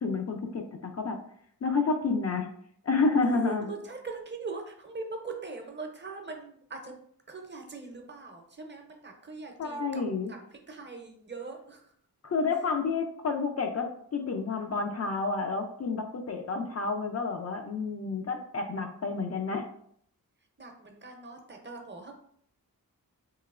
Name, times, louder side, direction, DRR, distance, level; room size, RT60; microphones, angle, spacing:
voice 1, 0.0-1.2 1.6-2.5 2.8-3.7 9.6-10.3 12.2-19.7, left 4 dB, 45° left, 3 dB, 0.4 m, -29 dB
voice 2, 3.2-7.0 7.3-11.9 20.6-22.2, right 3 dB, 30° right, 3 dB, 0.5 m, -41 dB
3.0 x 2.8 x 2.4 m, 0.65 s
cardioid pair, 70°, 38 cm